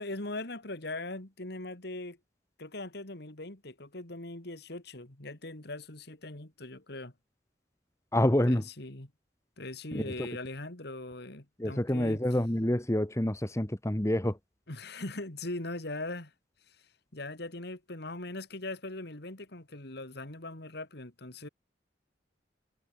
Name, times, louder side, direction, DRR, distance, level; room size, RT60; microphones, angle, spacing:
voice 1, 0.0-2.2 2.6-7.1 8.4-9.1 9.6-12.2 14.7-16.3 16.7-21.5, left 2 dB, 60° left, 2.7 m, -40 dB
voice 2, 8.1-8.6 9.9-10.3 11.6-14.4, left 1 dB, 15° left, 1.2 m, -27 dB
head